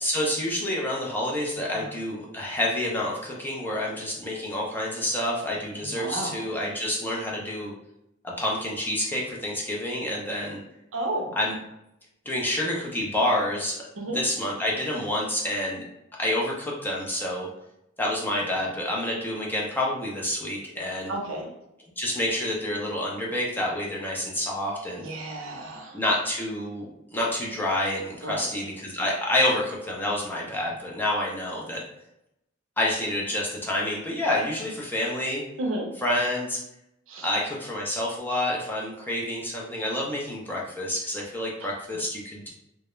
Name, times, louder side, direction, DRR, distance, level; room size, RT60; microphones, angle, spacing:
voice 1, 0.0-7.7 8.2-10.6 11.4-11.6 12.3-13.8 14.1-15.8 16.2-17.5 18.0-21.1 22.0-25.0 25.9-31.8 32.8-35.4 36.0-36.6 37.2-42.5, left 1 dB, 10° left, -3 dB, 0.4 m, -28 dB
voice 2, 5.8-6.3 10.9-11.3 14.0-14.2 21.1-21.5 25.0-26.0 28.2-28.5 35.6-35.9 37.1-37.3 41.6-41.7, right 1 dB, 70° right, 1 dB, 0.6 m, -32 dB
2.2 x 2.0 x 3.0 m, 0.82 s
head